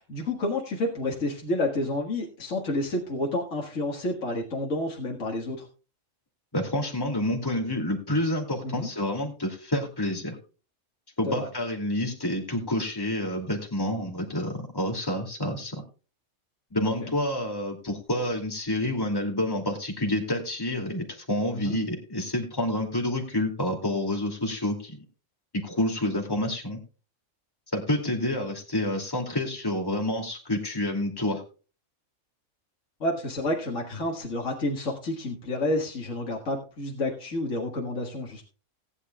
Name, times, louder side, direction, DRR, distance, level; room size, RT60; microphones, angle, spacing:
voice 1, 0.0-5.7 8.6-8.9 11.3-11.5 16.8-17.1 21.5-21.8 33.0-38.4, left 1 dB, 75° left, 0 dB, 2.1 m, -30 dB
voice 2, 6.5-10.4 11.2-15.8 16.7-24.9 25.6-26.8 27.7-31.4, left 1 dB, 15° left, 2 dB, 2.5 m, -28 dB
18.5 x 9.8 x 2.3 m, 0.35 s
omnidirectional pair, 1.3 m